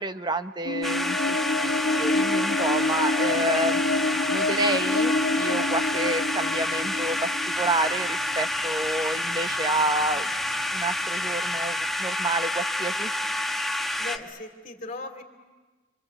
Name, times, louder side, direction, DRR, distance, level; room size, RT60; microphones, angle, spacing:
voice 1, 0.0-1.4 1.6-1.7 2.0-3.8 4.3-7.3 7.6-10.3 10.7-13.1, right 2 dB, 20° right, 9 dB, 0.9 m, -29 dB
sound 1, 0.6-8.8, left 2 dB, 60° left, 1.6 m, -27 dB
sound 2, 0.8-14.2, left 1 dB, ahead, 1.0 m, -28 dB
Musical instrument, 1.8-11.9, right 1 dB, 60° right, 4.4 m, -51 dB
voice 2, 14.0-15.2, left 3 dB, 40° left, 5 dB, 2.6 m, -37 dB
27.0 x 26.0 x 8.3 m, 1.3 s
head